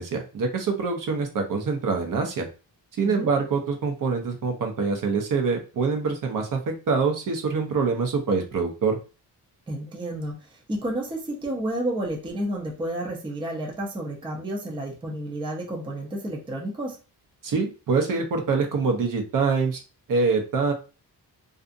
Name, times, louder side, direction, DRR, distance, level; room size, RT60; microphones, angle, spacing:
voice 1, 0.0-2.5 3.0-9.0 17.4-19.8 20.1-20.7, right 4 dB, 55° right, 3 dB, 0.7 m, -25 dB
voice 2, 9.7-17.0, right 1 dB, 15° right, 0 dB, 0.5 m, -31 dB
2.5 x 2.4 x 2.5 m, 0.32 s
cardioid pair, 120°, 40 cm